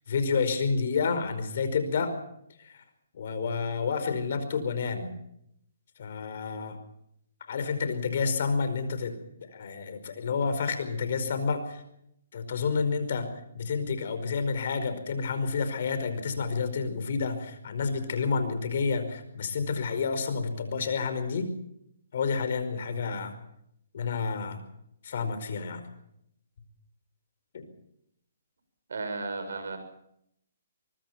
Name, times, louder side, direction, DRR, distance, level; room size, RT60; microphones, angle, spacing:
voice 1, 0.1-2.1 2.6-2.8 3.1-5.1 6.0-6.8 7.5-9.2 9.5-11.8 12.3-21.5 22.1-23.3 23.9-24.6 25.0-25.8 27.5-27.6, left 5 dB, 60° left, 9 dB, 5.1 m, -29 dB
voice 2, 28.9-29.8, right 3 dB, 75° right, 8 dB, 6.8 m, -34 dB
24.0 x 22.5 x 6.0 m, 0.75 s
hypercardioid pair, 140°, 0 cm